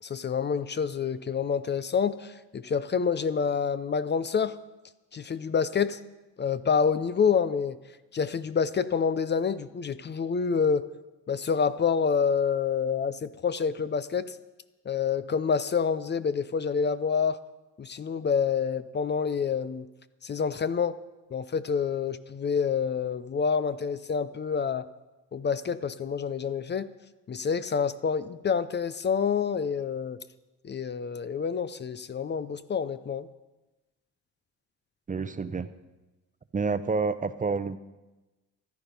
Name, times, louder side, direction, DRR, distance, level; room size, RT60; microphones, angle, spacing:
voice 1, 0.0-4.6 5.1-6.0 6.4-7.8 8.1-10.9 11.3-14.4 14.9-17.4 17.8-19.9 20.2-21.0 21.3-24.9 25.3-26.9 27.3-30.2 30.6-33.3, left 6 dB, 35° left, 14 dB, 0.6 m, -27 dB
voice 2, 35.1-35.7 36.5-37.8, right 4 dB, 25° right, 13 dB, 0.7 m, -28 dB
14.5 x 11.5 x 5.3 m, 1.1 s
cardioid pair, 90°, 30 cm